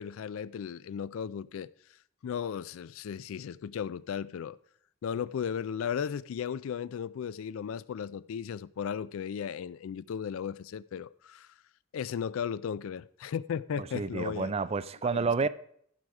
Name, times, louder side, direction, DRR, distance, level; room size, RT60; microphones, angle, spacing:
voice 1, 0.0-1.7 2.2-4.6 5.0-11.5 11.9-14.5 15.1-15.5, left 7 dB, 65° left, 0.3 m, -35 dB
voice 2, 13.8-15.5, right 4 dB, 25° right, 0.3 m, -30 dB
14.5 x 5.0 x 4.8 m
head